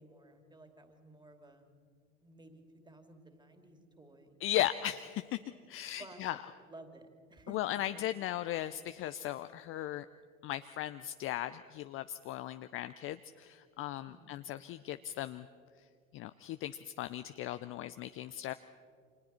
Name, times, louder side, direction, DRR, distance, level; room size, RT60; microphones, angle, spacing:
voice 1, 0.0-1.6 2.2-4.7 6.0-6.4 6.7-8.6 14.1-14.4, right 2 dB, 10° right, 5 dB, 2.7 m, -55 dB
voice 2, 4.4-5.4 5.7-6.4 7.5-10.1 10.4-15.5 16.1-18.5, left 13 dB, 30° left, 11 dB, 0.5 m, -37 dB
30.0 x 26.0 x 4.4 m, 2.2 s
figure-of-eight pair, 80°, 41 cm